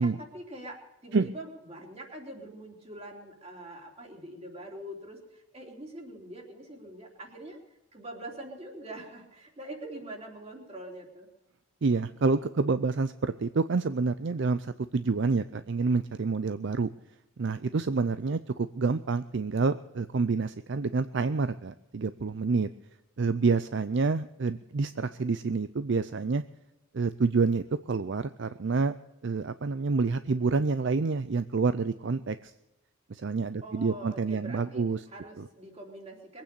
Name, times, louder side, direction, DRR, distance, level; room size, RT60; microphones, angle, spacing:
voice 1, 0.0-7.6 7.9-11.3 33.6-36.4, right 1 dB, 30° right, 1 dB, 3.3 m, -44 dB
voice 2, 11.8-16.9 17.4-22.7 23.2-26.4 26.9-28.9 29.2-32.5 33.1-35.0 35.4-35.5, right 4 dB, 55° right, 12 dB, 0.5 m, -28 dB
22.0 x 9.0 x 6.8 m, 1.0 s
head